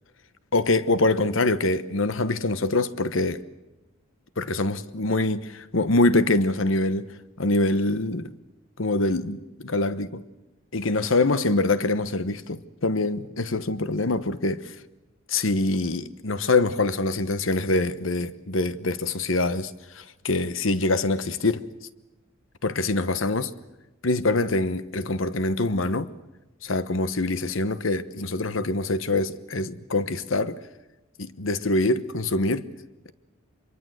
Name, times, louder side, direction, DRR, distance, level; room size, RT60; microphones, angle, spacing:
voice 1, 0.5-3.4 4.4-7.1 7.4-8.3 8.8-9.4 9.6-10.2 10.7-14.8 15.3-21.7 22.6-23.5 24.0-26.1 26.6-30.6 31.2-32.7, left 2 dB, 75° left, 1.1 m, -24 dB
25.5 x 23.0 x 8.0 m
head